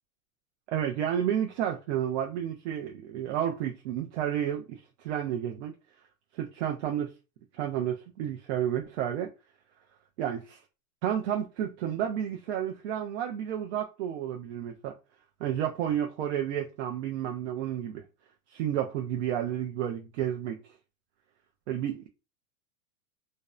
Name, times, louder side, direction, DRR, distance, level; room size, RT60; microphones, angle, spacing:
voice 1, 0.7-5.7 6.3-7.1 7.6-9.3 10.2-10.6 11.0-14.9 15.4-18.0 18.5-20.6 21.7-22.1, right 10 dB, 55° right, 0.5 m, -31 dB
2.5 x 2.1 x 2.3 m
supercardioid pair, 165°, 41 cm